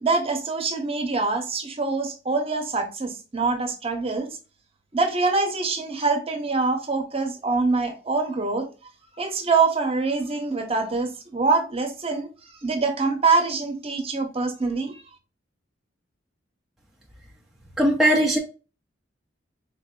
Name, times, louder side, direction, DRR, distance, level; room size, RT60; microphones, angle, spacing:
voice 1, 0.0-4.3 4.9-8.7 9.2-12.3 12.6-14.9, right 4 dB, 30° right, 0.8 m, -24 dB
voice 2, 17.8-18.4, equal, ahead, 0.5 m, -19 dB
4.2 x 2.6 x 2.2 m
head